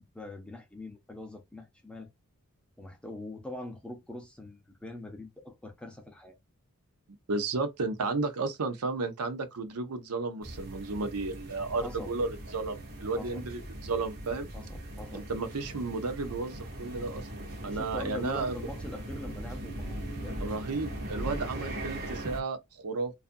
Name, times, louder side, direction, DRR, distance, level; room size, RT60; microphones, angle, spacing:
voice 1, 0.0-2.1 2.8-6.3 11.8-12.1 13.2-13.5 14.5-15.3 17.7-20.4, left 1 dB, 5° left, 0.5 m, -43 dB
voice 2, 7.3-14.5 15.1-18.5 20.4-23.1, right 3 dB, 80° right, 0.6 m, -33 dB
sound 1, 10.4-22.4, right 1 dB, 45° right, 0.8 m, -40 dB
2.4 x 2.4 x 2.5 m
head